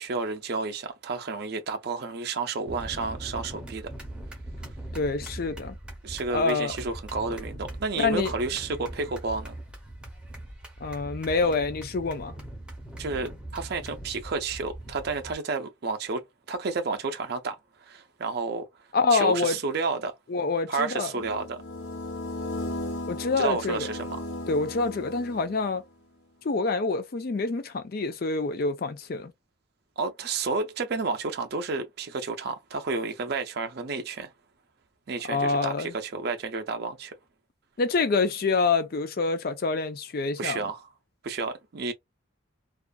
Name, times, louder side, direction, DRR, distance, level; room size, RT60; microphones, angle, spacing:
voice 1, 0.0-3.9 6.0-9.6 13.0-18.7 19.1-20.1 20.7-21.6 23.4-24.2 30.0-34.3 35.1-37.1 40.4-40.8 41.2-41.9, right 4 dB, 50° right, 0.5 m, -31 dB
sound 1, 2.7-15.3, right 1 dB, 5° right, 0.6 m, -41 dB
voice 2, 4.9-5.8 6.3-6.7 8.0-8.3 10.8-12.3 18.9-19.6 20.3-21.1 23.1-23.9 24.5-25.8 26.4-29.3 35.3-35.9 37.8-40.6, left 4 dB, 50° left, 0.4 m, -26 dB
sound 2, 21.1-25.8, left 1 dB, 70° left, 0.8 m, -36 dB
2.4 x 2.3 x 2.3 m
head